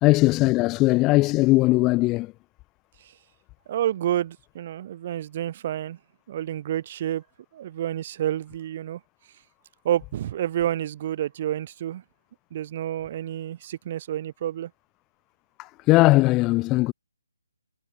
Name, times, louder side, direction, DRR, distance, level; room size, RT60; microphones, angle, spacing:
voice 1, 0.0-2.3 15.6-16.9, left 20 dB, 20° left, 0.4 m, -19 dB
voice 2, 3.7-6.0 6.3-7.2 7.5-9.0 9.8-12.0 12.5-14.7, right 11 dB, 35° right, 1.1 m, -29 dB
figure-of-eight pair, 145°, 0 cm